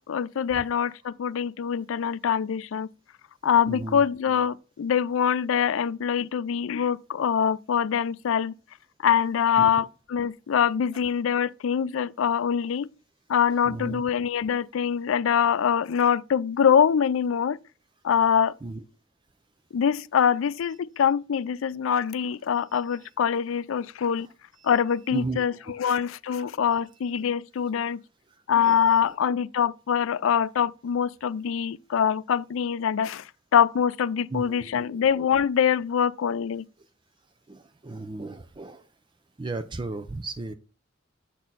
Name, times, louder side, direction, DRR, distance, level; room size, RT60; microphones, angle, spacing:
voice 1, 0.1-2.9 3.4-8.5 9.0-12.9 13.3-17.6 18.0-18.5 19.7-24.3 24.6-28.0 28.5-36.6, left 8 dB, 85° left, 0.4 m, -24 dB
voice 2, 3.7-4.0 9.6-9.8 13.7-14.0 18.6-18.8 23.8-23.9 24.6-24.7 25.1-25.4 28.6-28.8 34.3-34.9 37.5-38.8 39.4-40.5, right 3 dB, 25° right, 0.4 m, -35 dB
7.3 x 4.3 x 4.0 m
head